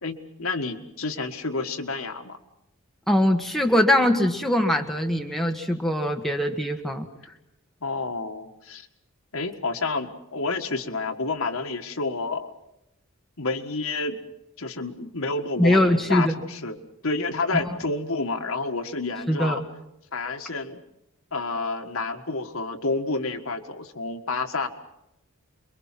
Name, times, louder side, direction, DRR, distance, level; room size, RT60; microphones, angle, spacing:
voice 1, 0.0-2.4 7.8-8.9 9.3-12.5 13.4-14.2 14.6-16.8 17.0-19.6 20.1-20.8 21.3-24.7, left 3 dB, 70° left, 6 dB, 1.7 m, -29 dB
voice 2, 3.1-7.1 15.6-16.3 17.5-17.7 19.3-19.6, left 1 dB, ahead, 2 dB, 1.6 m, -22 dB
28.0 x 23.0 x 5.9 m, 0.87 s
head